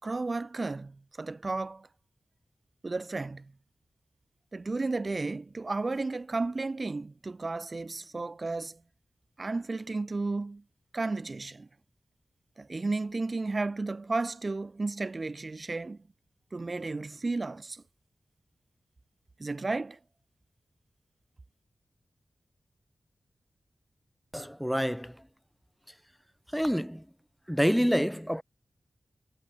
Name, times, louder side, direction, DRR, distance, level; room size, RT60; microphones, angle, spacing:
voice 1, 0.0-1.9 2.8-3.5 4.5-8.8 9.4-10.6 10.9-11.7 12.6-16.0 16.5-17.8 19.4-20.0, right 3 dB, 40° right, 4.0 m, -33 dB
voice 2, 24.3-25.2 26.5-27.0 27.5-28.4, equal, ahead, 0.8 m, -27 dB
wide cardioid pair, 105°, 0 cm